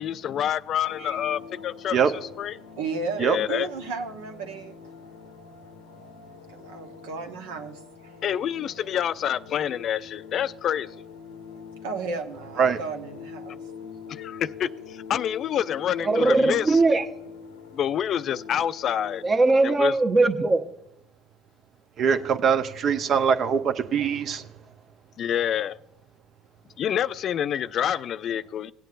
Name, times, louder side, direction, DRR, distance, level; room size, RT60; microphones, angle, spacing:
voice 1, 0.0-2.6 3.2-3.7 8.2-10.9 14.1-16.8 17.7-19.2 19.6-20.0 25.2-25.8 26.8-28.7, left 10 dB, 50° left, 0.3 m, -27 dB
sound 1, 0.9-19.3, left 6 dB, 85° left, 0.7 m, -44 dB
voice 2, 2.8-4.7 6.5-8.1 11.8-13.6, right 4 dB, 80° right, 1.0 m, -34 dB
voice 3, 16.0-17.1 19.2-20.7, right 3 dB, 30° right, 1.0 m, -20 dB
voice 4, 22.0-24.5, right 7 dB, 50° right, 0.7 m, -22 dB
18.0 x 9.1 x 2.5 m
hypercardioid pair, 65°, 0 cm